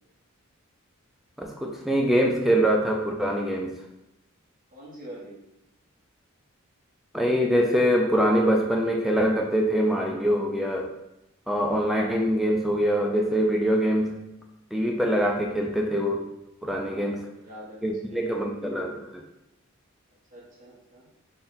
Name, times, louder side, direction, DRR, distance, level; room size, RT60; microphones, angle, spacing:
voice 1, 1.4-3.8 7.1-10.9 11.5-14.3 14.7-16.2 16.6-17.2 17.8-19.2, equal, ahead, 1 dB, 0.3 m, -24 dB
voice 2, 4.7-5.4 16.9-18.2 20.3-21.1, equal, 35° right, -6 dB, 1.2 m, -45 dB
3.9 x 2.2 x 3.9 m, 0.89 s
head